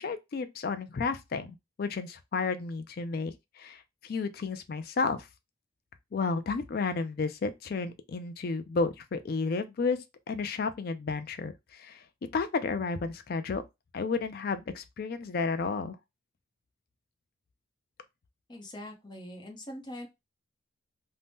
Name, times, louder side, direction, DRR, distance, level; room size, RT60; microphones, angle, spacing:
voice 1, 0.0-5.3 6.1-10.0 10.3-12.0 12.3-13.6 13.9-16.0, left 4 dB, 50° left, 0.3 m, -32 dB
voice 2, 18.5-20.1, left 1 dB, 25° left, 0.7 m, -42 dB
2.7 x 2.1 x 3.4 m
head